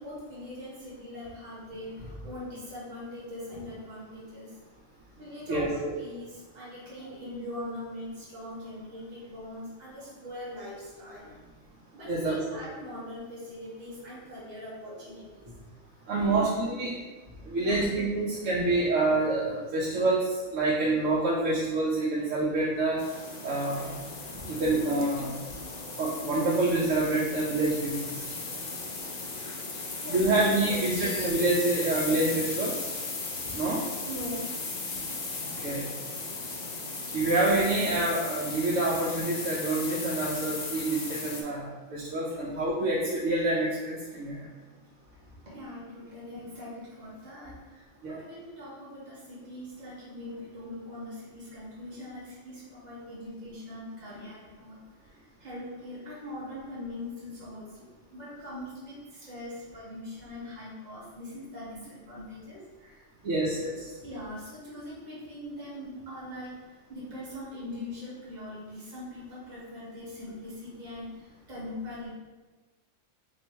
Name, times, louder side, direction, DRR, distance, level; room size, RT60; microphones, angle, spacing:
voice 1, 0.0-4.6 5.2-11.3 11.9-15.6 16.2-16.7 17.6-17.9 24.3-24.4 25.7-25.9 29.8-31.3 33.3-33.6 34.0-34.7 35.6-35.7 41.9-42.0 45.1-63.0 64.0-72.1, left 1 dB, 35° right, -9 dB, 1.3 m, -42 dB
voice 2, 5.5-5.9 12.1-12.4 16.1-16.9 17.4-23.0 23.4-24.0 24.5-25.3 26.0-28.3 30.1-32.8 33.5-33.8 35.6-35.8 37.1-44.4 48.0-48.1 63.2-63.9, right 2 dB, 90° right, -5 dB, 1.0 m, -27 dB
sound 1, 23.0-41.4, left 3 dB, 50° left, 0.5 m, -36 dB
3.1 x 2.5 x 4.2 m, 1.3 s
omnidirectional pair, 1.3 m